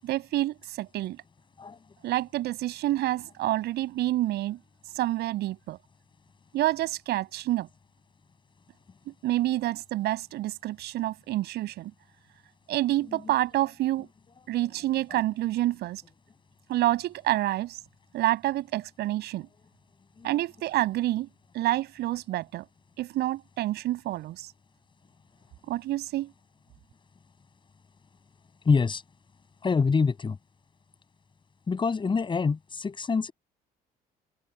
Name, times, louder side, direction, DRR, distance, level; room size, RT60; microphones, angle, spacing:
voice 1, 0.0-1.2 2.0-4.6 4.9-5.8 6.5-7.7 9.1-11.9 12.7-14.1 14.5-16.0 16.7-17.8 18.1-19.5 20.2-21.3 21.5-22.6 23.0-24.5 25.7-26.3, right 15 dB, 80° right, 7.4 m, -28 dB
voice 2, 28.6-29.0 29.6-30.4 31.7-33.3, left 5 dB, 30° left, 8.0 m, -25 dB
cardioid pair, 110°, 17 cm